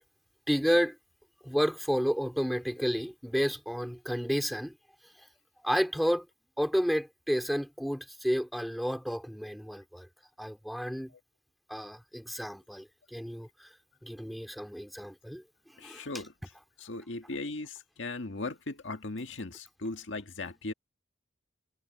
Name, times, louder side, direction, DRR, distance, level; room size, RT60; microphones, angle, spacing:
voice 1, 0.5-1.0 1.4-4.8 5.6-6.3 6.6-10.1 10.4-11.1 11.7-13.7 14.0-15.4 15.8-16.0, equal, ahead, 2.5 m, -31 dB
voice 2, 15.8-16.3 16.8-20.7, left 2 dB, 70° left, 1.8 m, -38 dB
head